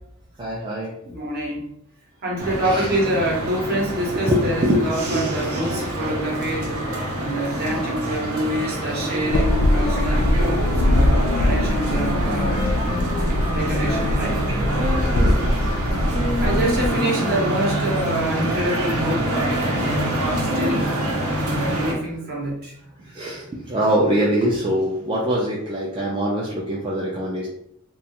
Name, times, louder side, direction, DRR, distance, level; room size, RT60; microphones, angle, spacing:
voice 1, 0.4-1.0 2.6-3.0 4.1-5.9 9.7-10.0 15.1-16.1 18.4-18.5 21.1-22.1 23.0-27.5, equal, 25° right, -4 dB, 0.3 m, -25 dB
voice 2, 1.0-1.7 2.2-6.7 7.2-10.3 10.9-12.6 13.5-14.4 15.9-16.1 16.4-20.0 20.5-20.9 21.3-22.7, right 1 dB, 45° right, -2 dB, 0.8 m, -26 dB
sound 1, 2.4-21.9, right 1 dB, 80° right, 0.7 m, -26 dB
sound 2, 9.3-16.9, left 1 dB, 65° left, 0.3 m, -21 dB
2.3 x 2.2 x 2.8 m, 0.75 s
head